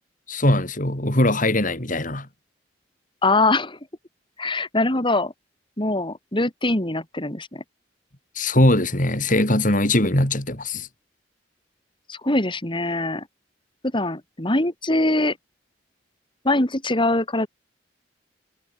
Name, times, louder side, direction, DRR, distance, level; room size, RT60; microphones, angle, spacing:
voice 1, 0.3-2.3 8.4-10.9, left 1 dB, 45° left, 5.7 m, -21 dB
voice 2, 3.2-3.8 4.4-5.3 5.8-7.6 12.1-13.3 13.9-15.4 16.4-17.5, left 2 dB, 25° left, 3.4 m, -23 dB
head